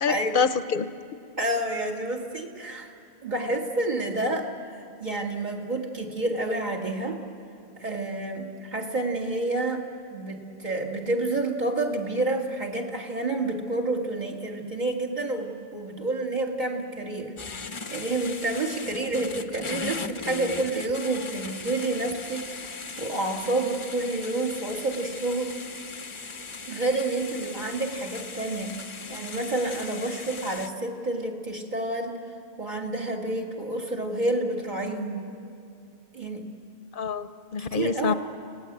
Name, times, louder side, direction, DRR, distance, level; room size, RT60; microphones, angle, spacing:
voice 1, 0.0-0.9 37.0-38.1, left 6 dB, 55° left, 12 dB, 0.9 m, -26 dB
voice 2, 1.4-2.9 3.2-7.2 7.8-9.8 10.1-17.3 17.6-25.6 26.7-28.8 29.1-32.2 32.6-35.2 36.1-36.5 37.6-38.1, right 2 dB, 45° right, 1 dB, 2.3 m, -29 dB
sound 1, 17.4-30.7, left 4 dB, 35° left, 0.7 m, -38 dB
29.0 x 18.5 x 8.1 m, 2.6 s
omnidirectional pair, 1.1 m